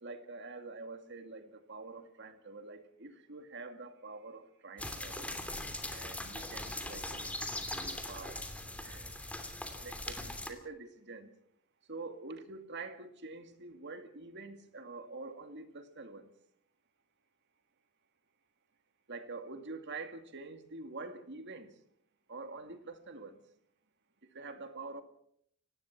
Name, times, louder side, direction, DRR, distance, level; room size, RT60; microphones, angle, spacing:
voice 1, 0.0-5.4 5.9-8.4 8.8-9.1 9.8-11.3 11.9-16.3 19.1-21.8 22.3-23.4 24.3-25.0, right 3 dB, 55° right, 2.3 m, -46 dB
sound 1, 4.8-10.5, left 1 dB, 5° left, 2.9 m, -40 dB
25.0 x 19.0 x 6.0 m
head